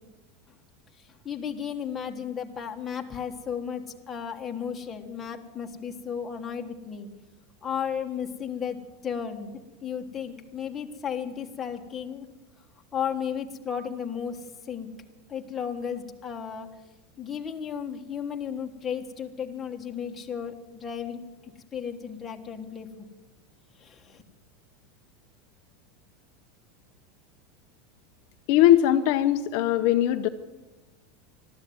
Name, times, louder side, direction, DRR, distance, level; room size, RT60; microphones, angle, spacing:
voice 1, 1.0-7.1 7.6-9.5 9.8-12.3 12.9-14.9 15.3-16.7 17.2-21.2 21.7-23.1 23.8-24.2, left 7 dB, 15° left, 3 dB, 1.4 m, -34 dB
voice 2, 28.5-30.3, left 12 dB, 45° left, 6 dB, 0.7 m, -20 dB
21.0 x 13.5 x 9.5 m, 1.2 s
supercardioid pair, 180°, 0 cm